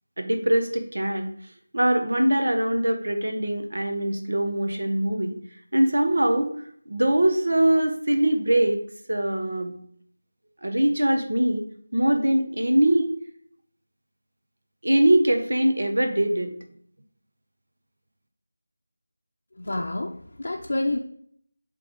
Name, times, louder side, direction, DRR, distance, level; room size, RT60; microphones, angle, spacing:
voice 1, 0.2-1.3 1.7-5.3 5.7-6.5 6.9-8.8 9.1-9.8 10.6-11.6 11.9-13.1 14.8-16.5, right 1 dB, 80° right, 5 dB, 1.1 m, -22 dB
voice 2, 19.6-21.0, left 2 dB, 60° left, 0 dB, 0.6 m, -28 dB
7.4 x 3.4 x 3.8 m, 0.62 s
figure-of-eight pair, 175°, 0 cm